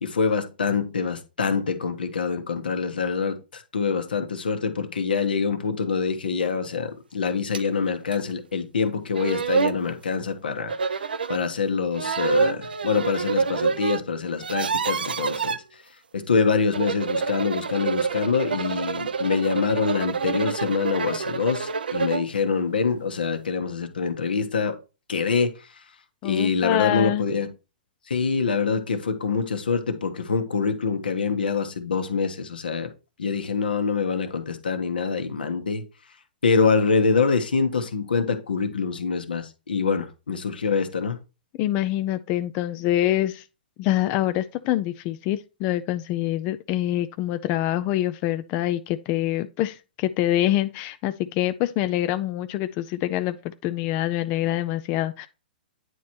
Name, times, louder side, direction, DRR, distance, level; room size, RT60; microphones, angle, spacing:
voice 1, 0.0-10.7 11.3-15.6 16.1-24.8 25.1-25.5 26.2-27.5 28.1-32.9 33.2-35.8 36.4-41.2, left 5 dB, 75° left, 1.1 m, -25 dB
sound 1, 7.5-7.7 8.1-8.2 8.9-9.0 9.2-9.8 10.7-11.4 11.9-14.0 14.3-15.6 16.6-22.3, right 5 dB, 80° right, 0.5 m, -27 dB
voice 2, 26.2-27.2 41.6-43.4 43.8-55.3, left 14 dB, 35° left, 0.3 m, -25 dB
9.2 x 3.1 x 4.3 m
figure-of-eight pair, 115°, 5 cm